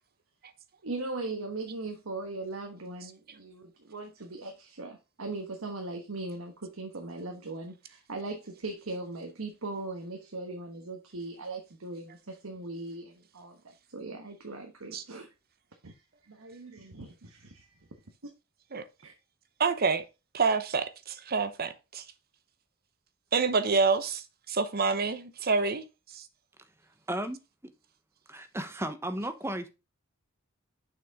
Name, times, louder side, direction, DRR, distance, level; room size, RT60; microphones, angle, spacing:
voice 1, 0.8-13.6 13.9-15.3 15.8-15.9 16.3-17.7 19.0-19.1, right 2 dB, 80° right, 1.3 m, -39 dB
voice 2, 19.6-20.0 20.3-22.0 23.3-25.8 26.1-26.3, right 4 dB, 50° right, 0.9 m, -27 dB
voice 3, 27.1-27.4 28.3-29.7, right 1 dB, 10° right, 0.9 m, -34 dB
6.8 x 5.9 x 3.6 m
head